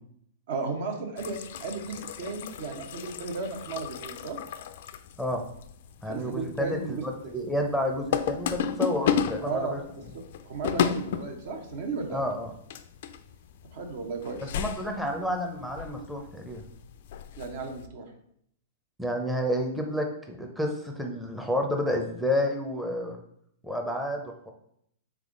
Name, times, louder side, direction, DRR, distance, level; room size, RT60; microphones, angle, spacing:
voice 1, 0.5-4.4 6.1-7.3 9.4-9.8 10.5-12.3 13.7-14.5 17.4-18.1, right 4 dB, 65° right, 4 dB, 0.8 m, -34 dB
sound 1, 1.2-17.9, left 8 dB, 60° left, 0.3 m, -34 dB
voice 2, 6.0-9.8 12.1-12.5 14.5-16.6 19.0-23.2 23.6-24.5, left 1 dB, ahead, 2 dB, 0.6 m, -30 dB
3.5 x 3.5 x 3.7 m, 0.70 s
hypercardioid pair, 120°, 0 cm